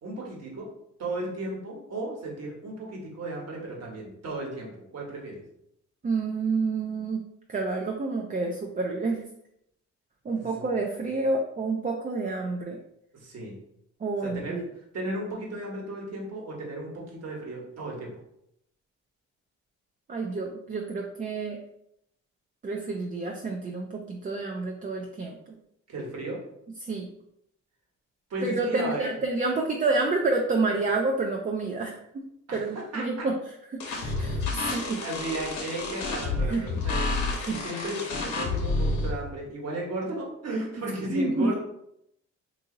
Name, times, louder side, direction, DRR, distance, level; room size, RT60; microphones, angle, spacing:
voice 1, 0.0-0.7 1.0-5.4 10.3-10.6 13.1-13.6 14.2-14.6 14.9-18.1 25.9-26.4 28.3-29.1 32.5-33.3 34.6-37.2 37.4-41.6, right 1 dB, 55° right, -1 dB, 1.3 m, -35 dB
voice 2, 6.0-7.2 7.5-9.2 10.2-12.8 14.0-14.6 20.1-21.6 22.6-25.4 26.8-27.1 28.4-31.9 32.5-33.3 33.8-35.0 36.4-36.8 37.3-37.6 41.1-41.6, right 3 dB, 30° right, 1 dB, 0.4 m, -29 dB
sound 1, 33.8-39.1, left 3 dB, 70° left, 0.9 m, -29 dB
2.7 x 2.7 x 3.8 m, 0.76 s
cardioid pair, 90°, 30 cm